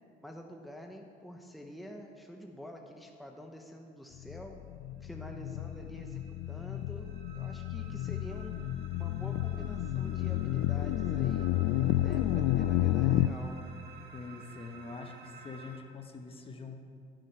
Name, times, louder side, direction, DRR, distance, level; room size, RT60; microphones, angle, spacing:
voice 1, 0.2-4.6 5.0-6.2 6.5-8.6 8.9-11.5 12.0-13.6, equal, ahead, 2 dB, 0.9 m, -47 dB
sound 1, 4.2-13.3, left 13 dB, 75° left, 0.4 m, -31 dB
sound 2, 5.3-15.8, right 4 dB, 70° right, 1.5 m, -54 dB
voice 2, 14.1-16.8, left 4 dB, 35° left, 4 dB, 1.1 m, -44 dB
12.5 x 7.7 x 5.5 m, 2.2 s
cardioid pair, 110°, 17 cm